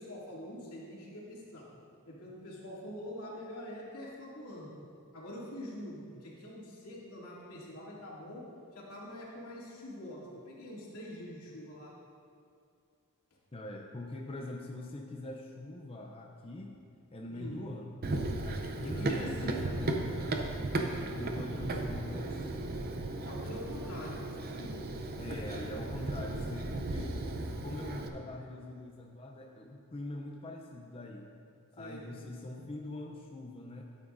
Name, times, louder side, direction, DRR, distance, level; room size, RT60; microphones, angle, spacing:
voice 1, 0.0-1.6 2.1-4.7 5.1-8.4 8.7-11.9 17.3-17.6 18.8-19.7 23.2-24.2 24.6-24.7 31.8-32.1, left 1 dB, 85° left, -6 dB, 2.5 m, -44 dB
voice 2, 13.5-16.7 17.1-17.9 18.4-20.1 20.7-22.9 23.2-23.6 25.2-27.2 27.6-31.3 31.7-33.8, left 1 dB, 25° left, 0 dB, 0.5 m, -43 dB
Run, 18.0-28.1, right 2 dB, 40° right, 0.6 m, -35 dB
13.0 x 8.9 x 2.6 m, 2.3 s
head